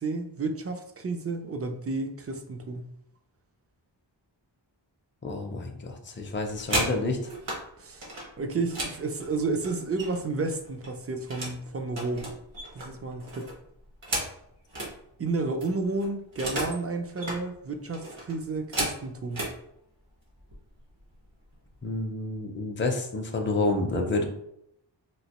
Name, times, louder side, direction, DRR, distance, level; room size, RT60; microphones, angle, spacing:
voice 1, 0.0-2.9 7.8-8.1 8.4-12.3 12.7-13.5 15.2-19.4, right 3 dB, 35° right, 5 dB, 0.4 m, -31 dB
voice 2, 5.2-7.2 21.8-24.2, left 2 dB, 25° left, 2 dB, 0.5 m, -29 dB
sound 1, 6.3-7.6 8.0-10.3 10.6-11.6 11.9-14.9 15.3-15.4 15.6-16.8 17.1-17.4 17.9-19.6 20.4-20.6 20.9-21.2 21.5-22.0, right 1 dB, 70° right, 1.4 m, -34 dB
3.1 x 2.8 x 2.9 m, 0.77 s
wide cardioid pair, 75°, 45 cm